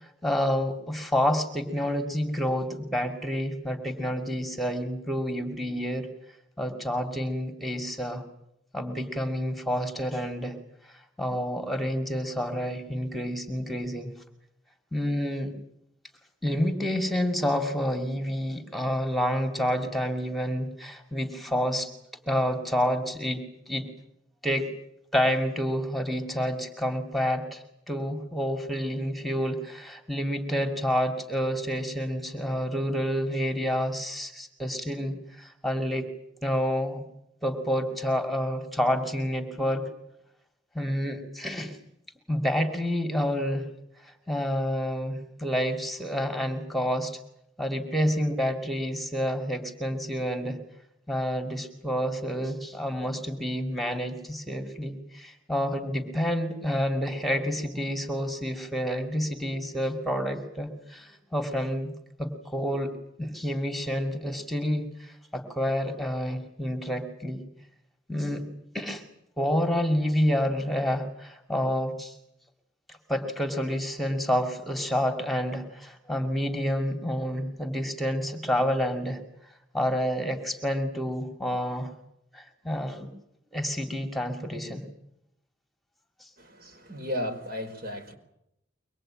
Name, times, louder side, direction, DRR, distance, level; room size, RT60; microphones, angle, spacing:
voice 1, 0.2-6.1 6.6-8.2 8.7-10.6 11.2-14.1 14.9-15.5 16.4-21.9 22.3-23.9 24.4-24.7 25.1-36.1 36.4-37.0 37.4-39.9 40.7-41.8 42.3-43.7 44.0-47.2 47.6-50.6 51.1-61.9 62.2-62.9 63.2-67.4 68.1-68.5 68.7-69.0 69.4-72.2 72.9-79.2 79.7-81.9 82.3-83.1 83.5-84.8 86.2-86.3, equal, ahead, 4 dB, 2.4 m, -29 dB
voice 2, 86.4-88.1, left 1 dB, 55° right, 6 dB, 4.6 m, -34 dB
23.5 x 21.5 x 8.9 m, 0.78 s
head